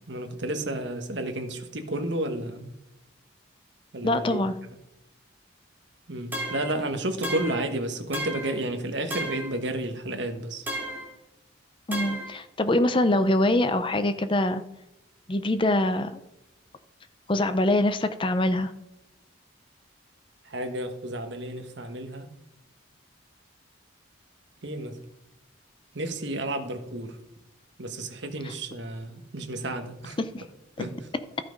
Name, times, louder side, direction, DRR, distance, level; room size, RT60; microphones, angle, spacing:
voice 1, 0.1-2.7 3.9-4.4 6.1-10.6 20.4-22.3 24.6-25.0 25.9-27.2 27.8-30.2 30.8-31.0, right 1 dB, 60° right, 6 dB, 1.3 m, -32 dB
voice 2, 4.0-4.5 11.9-14.6 15.3-16.2 17.3-18.7 30.3-30.4, left 1 dB, 25° left, 10 dB, 0.5 m, -24 dB
sound 1, 6.3-6.8 7.2-7.7 8.1-8.6 9.1-9.5 10.7-11.1 11.9-12.3, right 1 dB, 10° right, 2.0 m, -33 dB
13.5 x 6.0 x 5.2 m, 0.88 s
head